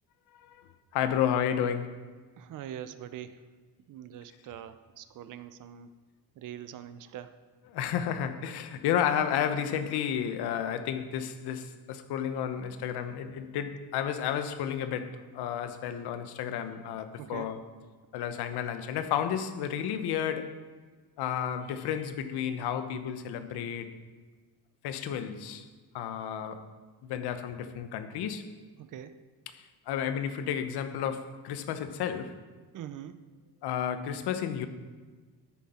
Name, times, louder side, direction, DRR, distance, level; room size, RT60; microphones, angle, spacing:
voice 1, 0.3-0.6 0.9-2.0 7.7-17.6 18.1-20.6 21.2-23.9 24.8-25.7 25.9-26.6 27.0-28.5 29.5-32.4 33.6-34.7, left 9 dB, 85° left, 10 dB, 1.0 m, -32 dB
voice 2, 2.4-3.4 3.9-5.9 6.4-7.4 17.2-17.5 28.8-29.2 32.7-33.3, right 10 dB, 55° right, 12 dB, 0.7 m, -43 dB
13.0 x 9.4 x 4.3 m, 1.4 s
cardioid pair, 155°, 38 cm